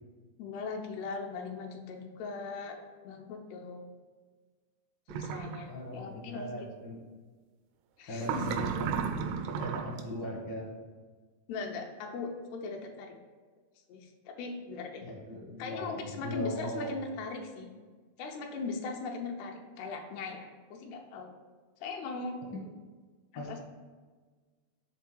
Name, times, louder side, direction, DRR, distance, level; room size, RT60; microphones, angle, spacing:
voice 1, 0.4-2.8 3.0-3.9 5.1-6.5 8.0-8.6 11.5-13.2 13.9-15.0 15.6-17.7 18.2-21.3 21.8-22.4 23.3-23.6, left 4 dB, 80° left, 2 dB, 2.7 m, -39 dB
sound 1, 5.1-5.6 8.2-10.0, right 7 dB, 85° right, 2.5 m, -33 dB
voice 2, 5.6-7.0 8.1-9.2 9.4-10.7 15.0-17.0 22.5-22.6 23.3-23.6, left 1 dB, 60° left, -2 dB, 1.2 m, -39 dB
7.1 x 3.7 x 6.2 m, 1.4 s
omnidirectional pair, 4.8 m